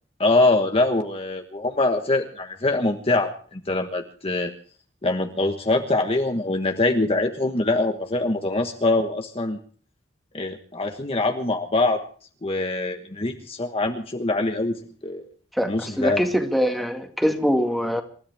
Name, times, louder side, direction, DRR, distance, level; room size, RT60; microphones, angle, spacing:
voice 1, 0.2-4.5 5.0-9.6 10.3-12.0 12.4-15.2 15.7-16.2, left 2 dB, 30° left, 4 dB, 1.3 m, -23 dB
voice 2, 15.5-18.0, equal, ahead, 3 dB, 2.0 m, -23 dB
28.0 x 13.5 x 3.5 m, 0.43 s
head